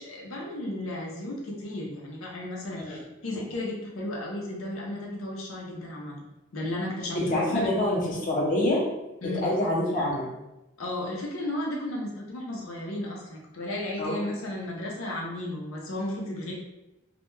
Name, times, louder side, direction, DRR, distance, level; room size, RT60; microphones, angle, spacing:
voice 1, 0.0-6.1 6.5-7.7 9.2-9.5 10.8-16.5, left 1 dB, 85° left, -2 dB, 0.6 m, -34 dB
voice 2, 7.2-8.8 9.3-10.3 14.0-14.2, left 1 dB, 40° left, -4 dB, 0.5 m, -26 dB
2.1 x 2.1 x 3.0 m, 0.94 s
head